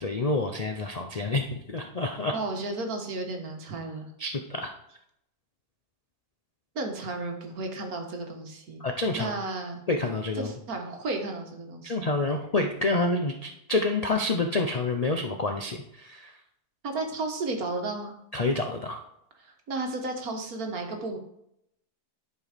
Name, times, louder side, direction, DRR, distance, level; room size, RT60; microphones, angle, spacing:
voice 1, 0.0-2.3 4.2-4.7 8.8-9.3 9.9-10.5 11.8-16.4 18.3-19.0, left 2 dB, 60° left, 4 dB, 0.4 m, -28 dB
voice 2, 2.3-4.1 6.8-8.8 9.2-9.8 10.4-12.1 16.8-18.1 19.4-21.2, right 2 dB, 65° right, 4 dB, 1.7 m, -33 dB
11.0 x 4.6 x 5.1 m, 0.78 s
omnidirectional pair, 1.7 m